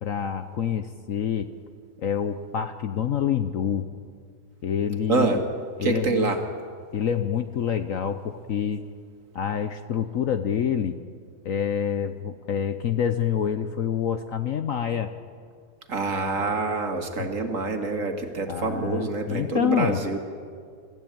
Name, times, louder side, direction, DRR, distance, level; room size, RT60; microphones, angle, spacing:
voice 1, 0.0-1.5 2.0-3.9 4.6-5.4 5.8-6.4 6.9-8.9 9.3-11.0 11.4-15.1 16.3-16.6 17.2-17.3 18.5-20.0, left 8 dB, 60° left, 9 dB, 1.0 m, -27 dB
voice 2, 5.8-6.4 15.9-20.2, right 3 dB, 50° right, 4 dB, 2.1 m, -26 dB
25.5 x 14.5 x 8.9 m, 2.1 s
omnidirectional pair, 1.9 m